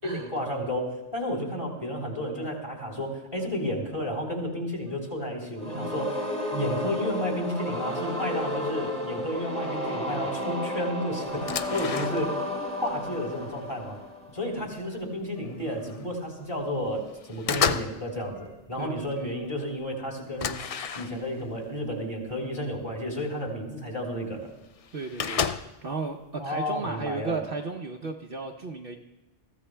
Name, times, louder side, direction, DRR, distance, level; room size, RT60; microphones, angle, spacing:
voice 1, 0.0-12.5 12.8-14.0 14.3-20.6 21.0-24.5 26.4-27.4, equal, 20° left, 0 dB, 3.5 m, -32 dB
sound 1, 1.8-2.0 2.3-2.5 2.8-3.0 3.3-3.5 3.8-4.0 4.3-4.5 4.8-5.0 5.3-5.5 5.8-6.0 6.3-6.5 6.8-7.0 7.3-7.5 7.8-8.0 8.3-8.5 8.8-9.0 9.3-9.5 9.8-10.0 10.3-10.5 10.8-11.0 11.3-11.5 11.8-12.0 12.3-12.5 12.8-13.0 13.3-13.5 13.8-14.0 14.3-14.5 14.8-15.0 15.3-15.5 15.8-16.0 16.3-16.5 16.8-17.0 17.3-17.5 17.8-18.0 18.3-18.5 18.8-19.0 19.3-19.5, left 2 dB, 80° left, 4.7 m, -53 dB
sound 2, 5.6-14.5, left 1 dB, 5° left, 2.4 m, -32 dB
sound 3, 11.3-12.5 12.9-14.1 14.6-14.8 15.2-16.1 16.5-16.9 17.2-18.1 18.3-18.8 19.3-19.4 19.7-19.8 20.4-21.5 22.3-22.4 22.9-23.0 24.1-24.2 24.3-24.4 24.6-25.9, left 6 dB, 60° left, 0.3 m, -32 dB
voice 2, 18.8-19.3 24.9-25.5 25.8-29.0, right 4 dB, 55° right, 2 dB, 0.9 m, -34 dB
22.0 x 15.0 x 2.2 m, 1.0 s
omnidirectional pair, 1.2 m